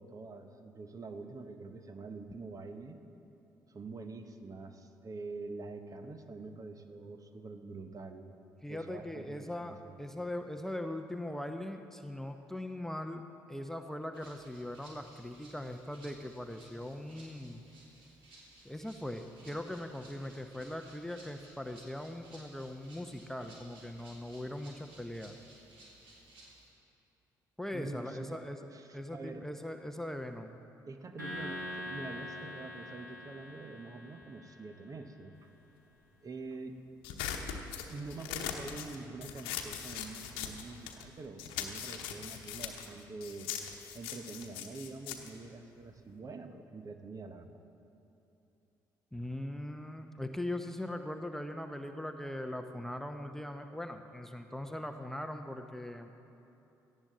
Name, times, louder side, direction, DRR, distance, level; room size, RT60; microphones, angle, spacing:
voice 1, 0.0-3.0 3.7-8.3 8.7-9.9 27.7-28.4 28.7-29.4 30.9-35.5 36.2-36.8 37.9-43.5 43.9-47.5, right 3 dB, 35° right, 8 dB, 1.1 m, -45 dB
voice 2, 8.6-13.2 13.5-17.6 18.6-25.4 27.6-28.7 28.9-30.5 49.1-56.1, left 1 dB, 5° left, 6 dB, 0.9 m, -40 dB
Rattle (instrument), 14.1-26.7, right 1 dB, 60° right, 3.6 m, -58 dB
sound 1, 31.2-34.7, left 1 dB, 90° right, 2.0 m, -43 dB
sound 2, 37.0-41.1 41.4-46.2, left 9 dB, 65° left, 1.0 m, -41 dB
17.5 x 14.5 x 3.9 m, 3.0 s
figure-of-eight pair, 45°, 10 cm